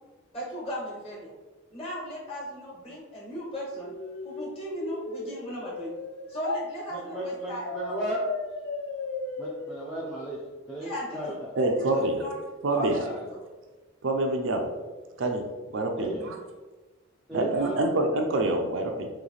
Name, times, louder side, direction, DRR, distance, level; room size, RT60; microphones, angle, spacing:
voice 1, 0.3-1.3 1.7-3.9 4.2-5.9 6.3-7.7 10.8-12.4 12.6-13.2, equal, 30° left, -4 dB, 1.4 m, -36 dB
sound 1, 3.8-6.6 7.6-10.7, left 3 dB, 65° left, 0.5 m, -36 dB
voice 2, 6.9-8.2 9.4-10.4 10.7-11.4 13.0-13.3 16.0-16.3 17.3-17.9, right 1 dB, ahead, -8 dB, 0.5 m, -35 dB
voice 3, 11.5-12.2 12.6-13.0 14.0-14.7 15.2-15.4 15.7-16.3 17.3-19.1, right 2 dB, 65° right, 3 dB, 0.5 m, -26 dB
3.2 x 3.2 x 3.9 m, 1.2 s
head